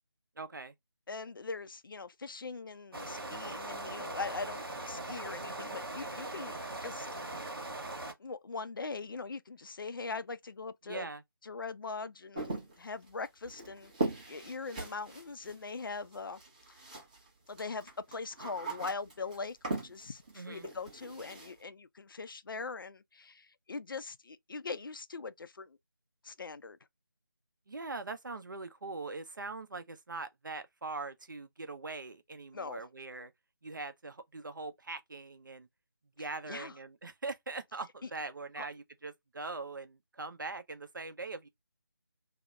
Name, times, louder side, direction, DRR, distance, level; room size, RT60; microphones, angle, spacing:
voice 1, 0.4-0.7 10.8-11.2 20.3-20.7 27.7-33.3 33.6-35.7 36.2-41.5, right 3 dB, 55° right, 0.6 m, -42 dB
voice 2, 1.1-7.1 8.2-11.1 11.4-16.4 16.7-16.8 17.5-25.8 26.2-26.8 32.5-32.8 36.2-36.7 38.6-38.7, left 4 dB, 65° left, 0.4 m, -41 dB
sound 1, 2.9-8.1, right 2 dB, 70° right, 1.1 m, -40 dB
sound 2, 12.4-17.3 17.5-21.5, right 2 dB, 20° right, 0.7 m, -40 dB
2.8 x 2.0 x 2.2 m
figure-of-eight pair, 160°, 12 cm